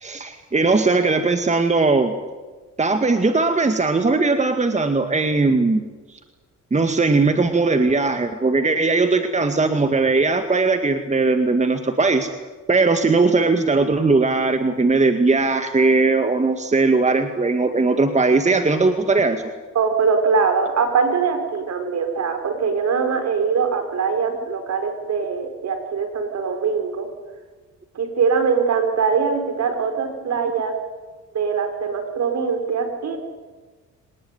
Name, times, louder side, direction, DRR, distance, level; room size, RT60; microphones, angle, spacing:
voice 1, 0.0-2.1 2.8-5.8 6.7-12.3 12.7-19.4, right 3 dB, 25° right, 7 dB, 2.1 m, -19 dB
voice 2, 19.7-27.1 27.9-30.7 31.3-33.2, right 5 dB, 60° right, 7 dB, 5.6 m, -22 dB
25.5 x 19.5 x 9.5 m, 1.3 s
cardioid pair, 90°, 30 cm